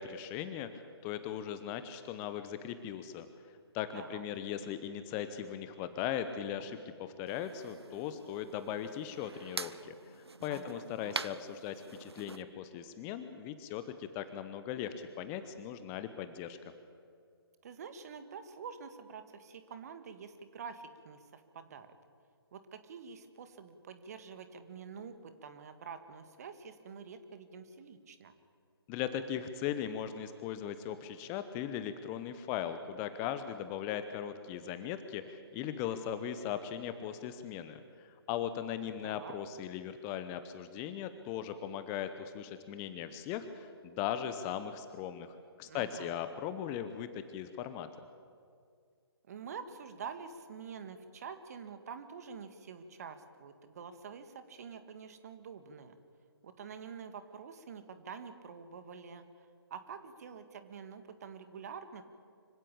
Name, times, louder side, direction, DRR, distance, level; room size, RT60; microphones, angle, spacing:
voice 1, 0.0-3.3 3.7-16.6 28.9-47.9, left 9 dB, 15° left, 11 dB, 0.8 m, -39 dB
voice 2, 3.9-4.2 10.5-11.2 17.6-21.9 22.5-28.3 39.0-39.3 45.6-46.1 49.3-56.0 56.4-62.0, right 6 dB, 40° right, 10 dB, 1.8 m, -47 dB
sound 1, 7.3-12.4, right 3 dB, 75° right, 0.9 m, -45 dB
25.0 x 16.5 x 8.6 m, 2.2 s
figure-of-eight pair, 140°, 13 cm